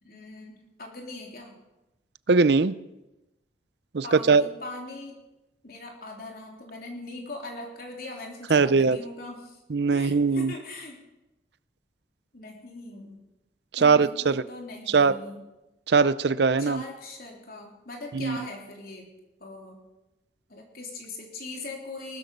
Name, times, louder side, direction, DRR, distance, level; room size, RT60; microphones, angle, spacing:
voice 1, 0.0-1.6 4.0-5.2 5.6-9.6 9.9-11.0 12.3-13.2 13.8-15.4 16.6-19.1 19.4-19.8 20.5-22.2, left 2 dB, 55° left, 0 dB, 3.4 m, -40 dB
voice 2, 2.3-2.7 3.9-4.5 8.5-9.0 9.7-10.5 13.7-14.4 14.9-15.1 15.9-16.8 18.1-18.4, right 4 dB, 65° right, 15 dB, 0.6 m, -21 dB
19.5 x 13.0 x 5.3 m, 0.98 s
head